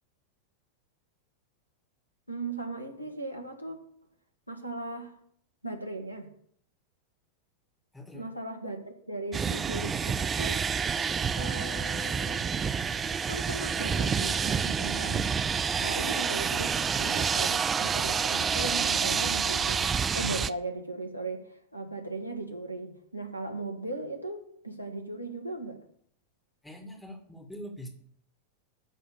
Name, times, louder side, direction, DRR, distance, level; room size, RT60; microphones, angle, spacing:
voice 1, 2.3-3.8 4.5-5.1 5.6-6.3 8.1-10.6 11.3-13.0 13.3-15.2 15.8-25.8, right 2 dB, 90° left, 5 dB, 1.7 m, -38 dB
voice 2, 7.9-8.3 26.6-27.9, equal, 5° left, 2 dB, 2.3 m, -43 dB
sound 1, 9.3-20.5, right 6 dB, 20° right, 0.4 m, -28 dB
12.5 x 4.2 x 7.0 m, 0.65 s
figure-of-eight pair, 90°, 0 cm